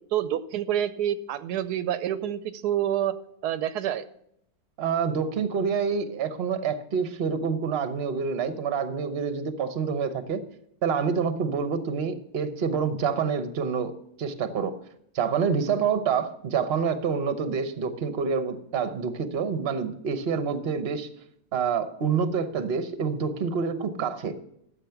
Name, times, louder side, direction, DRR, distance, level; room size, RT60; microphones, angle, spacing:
voice 1, 0.1-3.1 3.4-4.0, right 11 dB, 85° right, 13 dB, 1.2 m, -27 dB
voice 2, 4.8-10.4 10.8-13.9 14.2-14.7 15.1-21.1 21.5-24.3, right 6 dB, 45° right, 10 dB, 1.0 m, -27 dB
13.0 x 7.9 x 5.8 m, 0.74 s
omnidirectional pair, 1.7 m